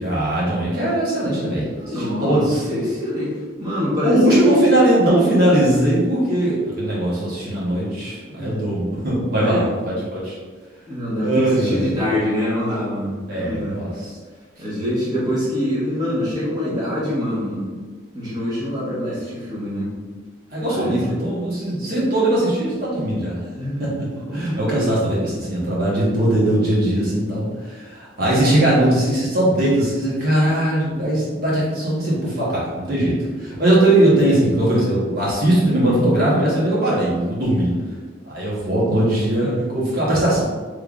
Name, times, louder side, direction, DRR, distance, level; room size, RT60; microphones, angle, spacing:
voice 1, 0.0-1.7 1.9-2.6 4.0-10.4 11.2-11.9 13.3-13.9 20.5-23.4 23.8-23.9 24.3-37.7 38.2-40.4, right 1 dB, 50° right, -7 dB, 1.0 m, -20 dB
voice 2, 1.8-4.6 8.4-8.7 9.3-9.7 10.9-13.8 14.6-17.7 18.1-19.9 20.7-21.1 23.5-25.1 33.3-33.4 37.6-38.1, left 1 dB, 20° right, -8 dB, 1.0 m, -25 dB
3.6 x 3.2 x 2.3 m, 1.5 s
head